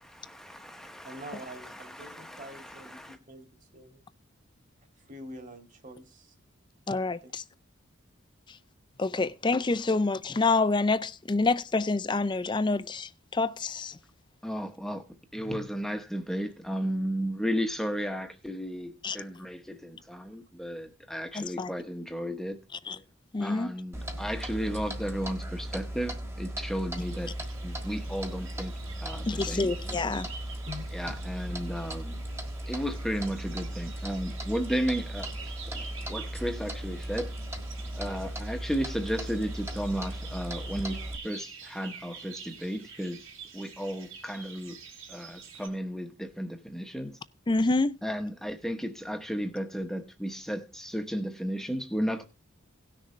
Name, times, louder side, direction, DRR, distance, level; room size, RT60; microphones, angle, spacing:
voice 1, 0.1-3.2 14.4-15.0 15.3-22.6 23.4-27.3 27.6-28.7 29.0-29.7 30.9-32.2 32.7-35.3 35.7-37.3 38.0-43.2 43.5-44.8 45.1-47.2 48.0-52.3, equal, ahead, 0.9 m, -34 dB
voice 2, 1.0-3.5 3.7-4.0 5.0-6.3 7.2-7.3 30.7-30.8, equal, 35° right, 2.2 m, -45 dB
voice 3, 6.9-7.4 9.0-14.0 19.0-19.2 21.3-21.7 22.9-23.0 23.3-23.7 29.3-30.3 47.5-48.0, left 3 dB, 20° left, 0.4 m, -27 dB
Clock, 23.9-41.2, right 1 dB, 15° right, 1.4 m, -37 dB
sound 1, 27.0-45.7, right 6 dB, 70° right, 3.4 m, -47 dB
17.5 x 6.6 x 3.2 m
head